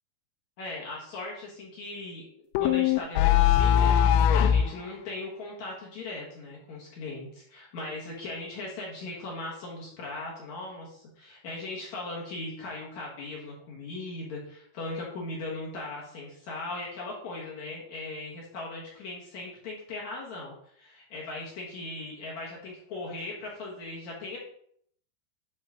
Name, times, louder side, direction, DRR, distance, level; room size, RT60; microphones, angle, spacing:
voice 1, 0.6-24.4, left 2 dB, 60° left, -4 dB, 1.9 m, -39 dB
sound 1, 2.6-4.7, left 9 dB, 85° left, 2.7 m, -20 dB
11.0 x 4.3 x 3.8 m, 0.65 s
omnidirectional pair, 5.5 m